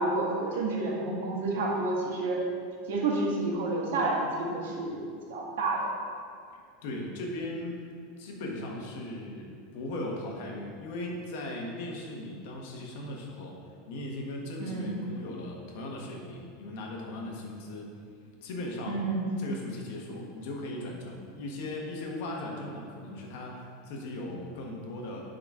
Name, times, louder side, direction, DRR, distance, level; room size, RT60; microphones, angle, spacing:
voice 1, 0.0-2.4 2.9-5.0 5.3-5.8 14.6-14.9 18.9-19.3, right 2 dB, 85° right, -2 dB, 1.6 m, -29 dB
voice 2, 6.5-7.8 8.2-13.6 13.9-17.9 18.4-19.0 19.4-25.2, left 1 dB, 55° left, 0 dB, 1.2 m, -38 dB
7.8 x 3.9 x 4.8 m, 2.2 s
supercardioid pair, 175°, 0 cm